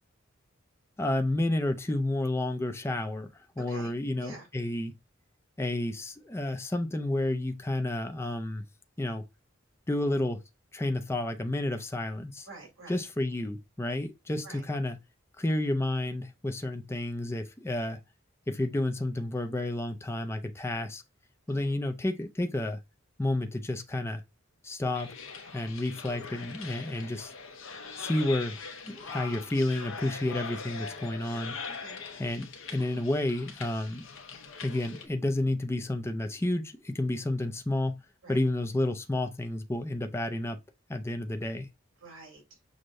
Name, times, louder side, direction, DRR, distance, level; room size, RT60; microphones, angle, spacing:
voice 1, 1.0-3.3 3.6-4.9 5.6-8.6 9.0-9.2 9.9-10.4 10.7-12.5 12.9-15.0 15.4-18.0 18.5-21.0 21.5-22.8 23.2-24.2 24.6-25.1 25.5-27.3 28.0-28.6 28.9-31.6 32.2-34.0 34.6-38.0 38.3-40.6 40.9-41.7, left 1 dB, 15° left, 0.4 m, -30 dB
voice 2, 12.5-13.0 14.4-14.6 21.5-21.7 31.6-32.0 38.2-38.4 42.0-42.4, right 3 dB, 70° right, 2.3 m, -47 dB
sound 1, 24.9-35.1, left 5 dB, 70° left, 0.7 m, -42 dB
6.2 x 2.1 x 2.5 m
head